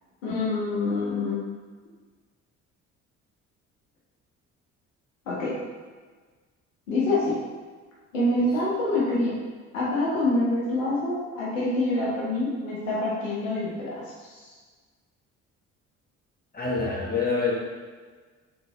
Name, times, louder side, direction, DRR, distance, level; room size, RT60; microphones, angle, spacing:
voice 1, 0.2-1.4 5.3-5.5 6.9-7.4 8.1-9.3 9.7-13.9 14.3-14.4, left 2 dB, 90° left, -7 dB, 1.0 m, -26 dB
voice 2, 16.5-17.5, left 4 dB, 25° left, -4 dB, 1.4 m, -26 dB
4.0 x 3.7 x 2.9 m, 1.4 s
hypercardioid pair, 50°, 38 cm